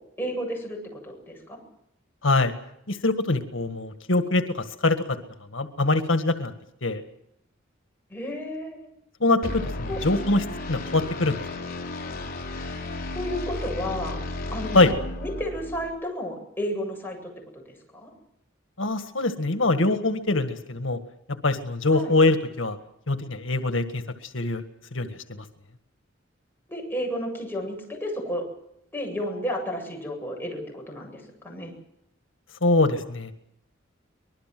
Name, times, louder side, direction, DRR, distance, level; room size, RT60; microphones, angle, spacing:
voice 1, 0.2-1.6 8.1-8.9 9.9-10.0 13.1-14.2 14.5-17.3 17.7-18.1 21.9-22.1 26.7-28.4 28.9-31.7, equal, 10° left, 0 dB, 8.0 m, -32 dB
voice 2, 2.2-2.5 2.9-5.2 5.5-6.5 6.8-7.0 9.2-11.4 14.7-14.9 18.8-21.0 21.4-22.8 23.1-24.6 24.9-25.4 32.6-33.3, left 2 dB, 85° left, 8 dB, 1.8 m, -23 dB
sound 1, 9.4-15.9, left 2 dB, 50° left, 4.1 m, -33 dB
25.0 x 20.5 x 7.8 m, 0.76 s
head